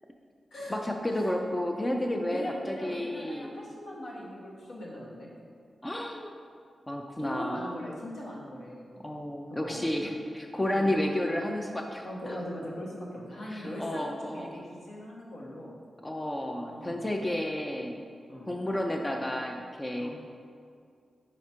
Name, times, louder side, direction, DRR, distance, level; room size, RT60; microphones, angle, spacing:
voice 1, 0.7-3.5 5.8-6.3 6.9-7.7 9.0-12.4 13.5-14.5 16.0-18.0 18.5-20.1, left 1 dB, 15° left, 2 dB, 0.3 m, -31 dB
voice 2, 2.3-5.3 7.2-8.9 9.6-9.8 10.7-10.9 12.0-15.7 16.6-17.1 18.3-18.5 20.0-20.1, equal, 80° left, -4 dB, 1.2 m, -40 dB
4.9 x 4.6 x 4.3 m, 2.3 s
wide cardioid pair, 160°, 0 cm